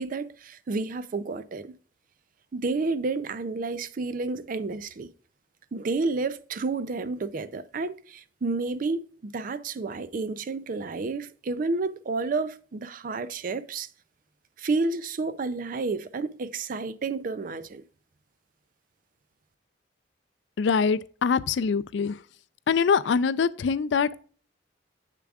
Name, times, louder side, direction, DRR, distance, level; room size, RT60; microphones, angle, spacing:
voice 1, 0.0-1.7 2.5-5.1 5.7-13.9 14.6-17.8, right 3 dB, 50° right, 0.4 m, -30 dB
voice 2, 20.6-22.2 22.7-24.2, left 5 dB, 75° left, 0.4 m, -24 dB
7.4 x 6.8 x 2.3 m
head